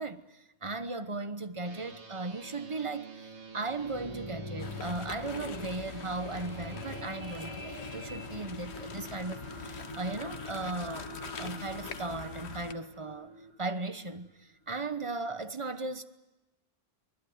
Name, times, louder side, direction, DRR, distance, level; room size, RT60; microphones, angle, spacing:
voice 1, 0.0-11.1 11.4-13.3 13.6-16.0, right 3 dB, 30° right, 1.0 m, -37 dB
sound 1, 1.6-13.5, right 3 dB, 90° right, 2.3 m, -49 dB
sound 2, 3.5-14.0 14.6-14.7, left 1 dB, 25° left, 3.5 m, -45 dB
sound 3, 4.6-12.7, left 6 dB, 75° left, 1.3 m, -44 dB
24.5 x 20.5 x 9.4 m
omnidirectional pair, 1.1 m